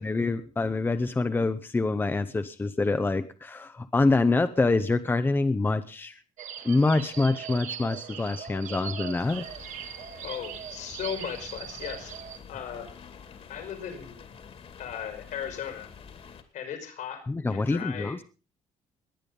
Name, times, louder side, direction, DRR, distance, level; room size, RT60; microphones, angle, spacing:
voice 1, 0.0-6.2 6.6-9.5 17.3-18.2, left 3 dB, 15° left, 10 dB, 0.8 m, -26 dB
sound 1, 6.4-12.4, right 8 dB, 70° right, 1.8 m, -40 dB
sound 2, 9.2-16.4, left 6 dB, 50° left, 2.5 m, -48 dB
voice 2, 10.2-12.1 12.5-13.0 13.5-14.2 14.8-15.9 16.5-18.2, left 8 dB, 75° left, 7 dB, 5.1 m, -37 dB
20.5 x 9.0 x 5.3 m, 0.36 s
cardioid pair, 125°, 13 cm